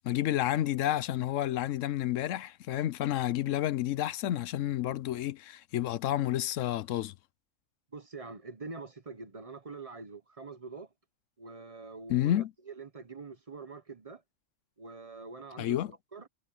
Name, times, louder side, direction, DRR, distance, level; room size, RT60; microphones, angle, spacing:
voice 1, 0.0-7.1 12.1-12.5 15.6-15.9, left 12 dB, 85° left, 1.0 m, -30 dB
voice 2, 7.9-10.9 11.4-12.4 12.7-14.2 14.8-15.8 16.1-16.3, right 4 dB, 30° right, 0.9 m, -44 dB
omnidirectional pair, 1.3 m